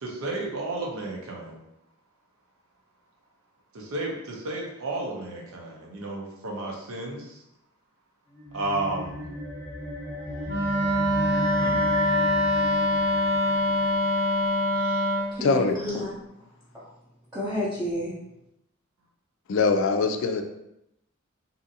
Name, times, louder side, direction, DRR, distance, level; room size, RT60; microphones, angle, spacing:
voice 1, 0.0-1.6 3.7-7.4 8.5-9.3 11.6-11.9, right 2 dB, 90° right, -1 dB, 0.7 m, -32 dB
sound 1, 8.3-15.0, equal, 15° left, 0.8 m, -36 dB
Wind instrument woodwind instrument, 10.5-15.3, left 1 dB, 65° right, 1.0 m, -24 dB
voice 2, 14.7-16.2 16.7-16.9 17.3-18.1, left 1 dB, 15° right, -11 dB, 0.6 m, -31 dB
voice 3, 15.4-15.7 19.5-20.4, left 4 dB, 65° left, 6 dB, 0.3 m, -22 dB
2.7 x 2.6 x 2.6 m, 0.84 s
head